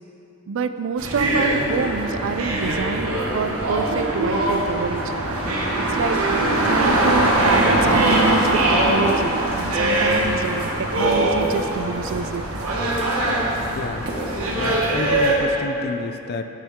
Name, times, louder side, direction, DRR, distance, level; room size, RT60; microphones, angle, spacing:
voice 1, 0.5-5.1 5.8-6.2 6.6-12.4, right 5 dB, 60° right, 10 dB, 0.4 m, -27 dB
sound 1, 1.0-15.4, right 1 dB, 80° right, 1.4 m, -21 dB
voice 2, 13.7-14.1 14.5-16.4, left 3 dB, 45° left, 8 dB, 0.4 m, -29 dB
9.2 x 8.4 x 3.6 m, 2.9 s
head